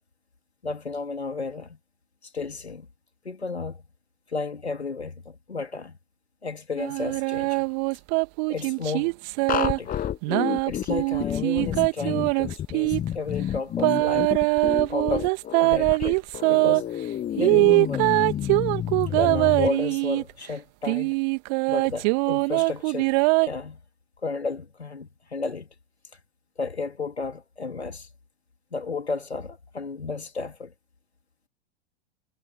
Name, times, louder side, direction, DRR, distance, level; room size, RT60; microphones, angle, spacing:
voice 1, 0.6-1.8 2.2-2.9 3.2-3.8 4.3-6.0 6.4-7.7 8.5-9.1 9.5-9.9 10.6-14.3 14.9-16.9 17.3-18.1 19.1-21.1 21.7-23.1 23.4-23.8 24.2-25.7 26.6-28.1 28.7-30.7, left 4 dB, 80° left, 3.2 m, -33 dB
sound 1, 6.8-9.8 10.2-13.0 13.8-16.8 17.4-20.3 20.9-23.5, right 33 dB, 40° right, 1.7 m, -22 dB
sound 2, 9.5-19.7, left 11 dB, 25° left, 7.5 m, -30 dB
figure-of-eight pair, 95°, 32 cm